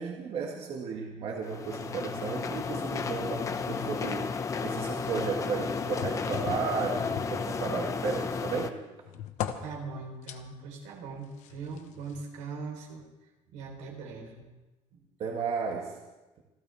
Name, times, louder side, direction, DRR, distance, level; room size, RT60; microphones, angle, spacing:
voice 1, 0.0-4.3 4.6-8.8 15.2-16.0, right 5 dB, 55° right, 0 dB, 1.8 m, -34 dB
sound 1, 1.4-8.7, left 5 dB, 25° left, 0.7 m, -33 dB
sound 2, 6.0-8.0 8.4-10.4 11.4-12.3 13.0-13.1, left 10 dB, 90° left, 1.1 m, -39 dB
voice 2, 9.6-13.1 13.5-14.5 14.9-15.0, right 4 dB, 90° right, 1 dB, 3.7 m, -41 dB
28.0 x 12.5 x 3.4 m, 1.1 s
cardioid pair, 160°, 12 cm